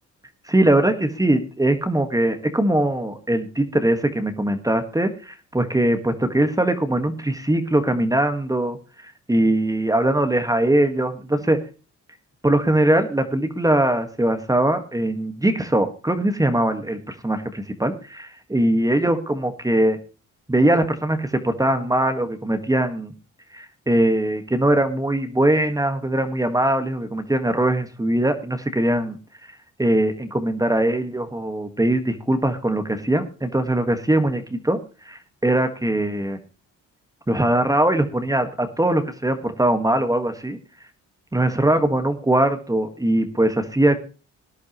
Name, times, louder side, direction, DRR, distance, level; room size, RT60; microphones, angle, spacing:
voice 1, 0.5-8.8 9.0-11.6 12.4-20.0 20.5-23.1 23.5-29.2 29.8-34.8 35.0-36.4 37.3-40.6 41.3-44.0, right 1 dB, 10° right, 7 dB, 1.6 m, -21 dB
18.0 x 11.0 x 3.0 m, 0.34 s
cardioid pair, 95°, 31 cm